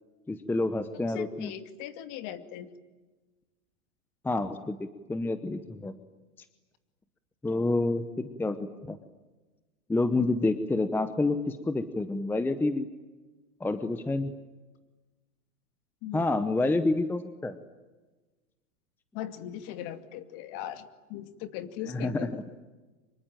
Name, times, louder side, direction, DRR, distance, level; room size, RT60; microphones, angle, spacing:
voice 1, 0.3-1.5 4.2-5.9 7.4-9.0 9.9-12.9 13.6-14.3 16.1-17.6 21.8-22.4, left 2 dB, 5° left, 11 dB, 0.8 m, -28 dB
voice 2, 1.0-2.7 16.0-16.3 19.1-22.4, left 11 dB, 45° left, 10 dB, 2.5 m, -39 dB
25.5 x 23.0 x 9.0 m, 1.2 s
hypercardioid pair, 140°, 44 cm